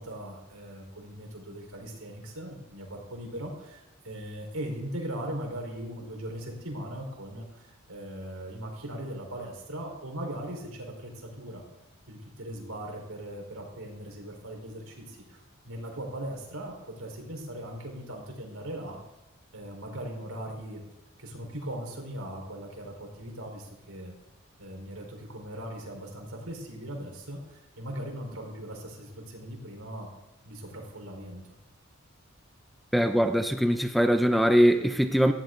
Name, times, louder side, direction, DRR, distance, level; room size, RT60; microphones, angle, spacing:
voice 1, 0.0-11.7 12.1-15.4 15.6-19.0 19.5-20.8 21.2-24.1 24.6-30.1 30.4-31.5, right 1 dB, 80° right, 1 dB, 4.5 m, -39 dB
voice 2, 32.9-35.3, equal, ahead, 6 dB, 0.6 m, -22 dB
18.5 x 15.5 x 3.9 m, 0.94 s
head